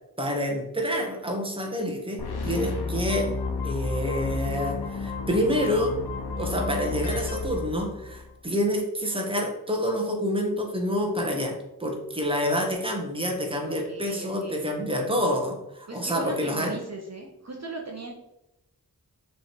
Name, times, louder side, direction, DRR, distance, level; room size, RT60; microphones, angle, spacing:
voice 1, 0.2-3.3 3.6-6.0 6.4-16.8, equal, 15° right, 1 dB, 1.3 m, -27 dB
sound 1, 2.2-8.3, left 4 dB, 85° left, 0.9 m, -32 dB
voice 2, 13.6-14.7 15.9-18.1, right 2 dB, 45° right, 1 dB, 1.0 m, -39 dB
6.2 x 3.5 x 4.5 m, 0.90 s
wide cardioid pair, 70°, 37 cm